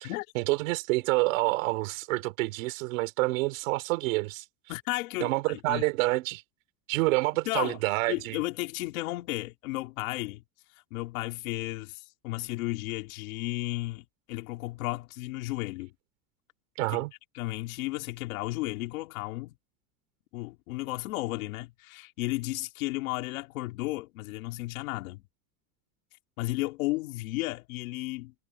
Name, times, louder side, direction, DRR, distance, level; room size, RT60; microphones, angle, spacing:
voice 1, 0.0-4.4 5.2-6.4 6.9-8.4 16.8-17.1, right 23 dB, 70° right, 3.1 m, -28 dB
voice 2, 4.7-5.8 7.4-7.8 8.1-10.4 10.7-15.9 16.9-17.0 17.3-19.5 20.3-25.2 26.4-28.3, left 20 dB, 80° left, 2.9 m, -34 dB
cardioid pair, 180°, 41 cm